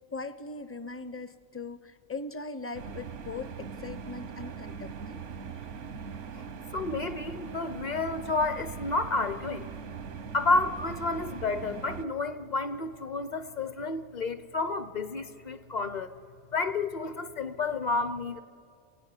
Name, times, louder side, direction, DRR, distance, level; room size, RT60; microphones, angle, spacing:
voice 1, 0.1-5.2, left 3 dB, 15° left, 13 dB, 0.5 m, -40 dB
sound 1, 2.7-12.1, right 6 dB, 85° right, 1.2 m, -41 dB
voice 2, 6.7-9.7 10.3-16.1 16.5-18.4, left 3 dB, 40° left, 12 dB, 0.9 m, -30 dB
26.0 x 17.0 x 9.8 m, 2.4 s
omnidirectional pair, 1.2 m